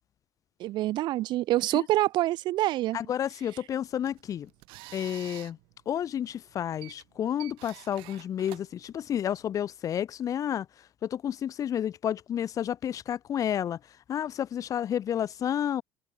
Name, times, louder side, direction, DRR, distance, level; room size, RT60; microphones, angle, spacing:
voice 1, 0.6-3.0, right 16 dB, 60° right, 5.5 m, -26 dB
voice 2, 2.9-4.5 4.9-5.6 5.8-10.7 11.0-13.8 14.1-15.8, left 10 dB, 40° left, 3.3 m, -30 dB
sound 1, 3.8-9.5, right 25 dB, 80° right, 6.0 m, -50 dB
open air
cardioid pair, 135°, 9 cm